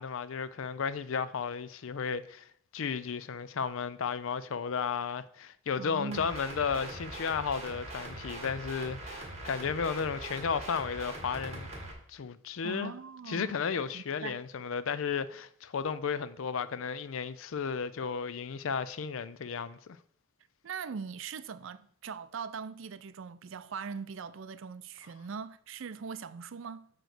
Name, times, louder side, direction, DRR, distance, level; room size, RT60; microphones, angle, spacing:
voice 1, 0.0-2.5 2.7-11.7 12.1-12.9 13.3-20.0, left 6 dB, 70° left, 0.5 m, -34 dB
voice 2, 5.8-6.4 12.6-13.6 13.9-14.4 20.6-26.9, right 5 dB, 65° right, 0.4 m, -41 dB
sound 1, 6.1-11.9, right 1 dB, 30° right, 1.7 m, -42 dB
9.1 x 3.1 x 6.4 m
head